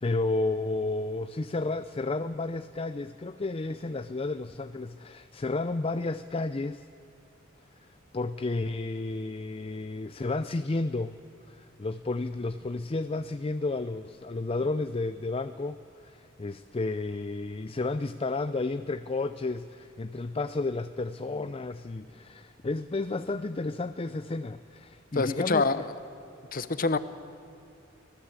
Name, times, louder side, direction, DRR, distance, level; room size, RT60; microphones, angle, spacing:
voice 1, 0.0-6.9 7.8-7.9 8.1-11.2 11.4-25.7, left 3 dB, 30° left, 11 dB, 0.5 m, -32 dB
voice 2, 25.1-25.8 26.5-27.0, left 3 dB, 45° left, 13 dB, 0.9 m, -26 dB
25.0 x 18.0 x 8.1 m, 2.6 s
head